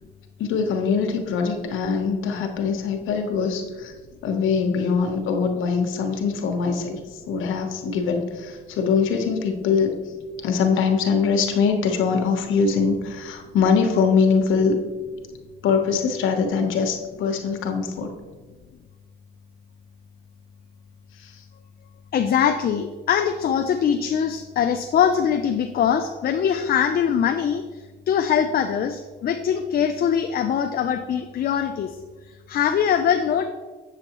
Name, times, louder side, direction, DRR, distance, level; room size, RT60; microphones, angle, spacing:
voice 1, 0.4-3.9 4.2-7.0 7.2-10.0 10.4-14.8 15.6-18.1 21.2-21.3, left 5 dB, 85° left, 4 dB, 1.1 m, -22 dB
voice 2, 22.1-32.0 32.5-33.5, left 8 dB, 50° left, 7 dB, 0.5 m, -22 dB
7.7 x 6.9 x 3.0 m, 1.3 s
cardioid pair, 90°, 20 cm